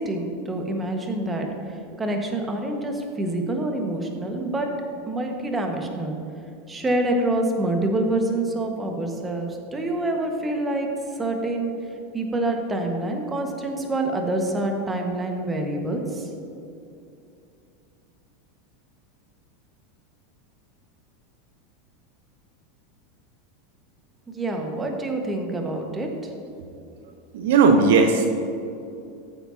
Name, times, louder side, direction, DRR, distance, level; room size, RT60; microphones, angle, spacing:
voice 1, 0.0-4.7 5.0-6.2 6.7-10.9 11.1-11.7 12.1-16.3 24.3-26.1, right 2 dB, 20° right, 3 dB, 1.4 m, -26 dB
voice 2, 27.3-28.4, right 4 dB, 65° right, 5 dB, 0.7 m, -17 dB
14.0 x 8.2 x 2.8 m, 2.6 s
figure-of-eight pair, 85°, 0 cm